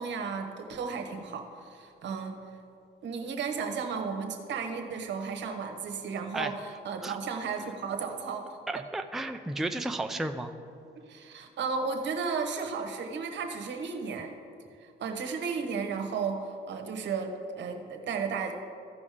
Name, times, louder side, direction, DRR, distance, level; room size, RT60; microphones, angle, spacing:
voice 1, 0.0-2.4 3.0-8.6 11.0-14.3 14.8-18.5, right 5 dB, 65° right, 5 dB, 1.2 m, -34 dB
voice 2, 8.7-10.5, right 2 dB, ahead, 6 dB, 0.4 m, -33 dB
14.5 x 5.3 x 5.0 m, 2.5 s
cardioid pair, 90°, 20 cm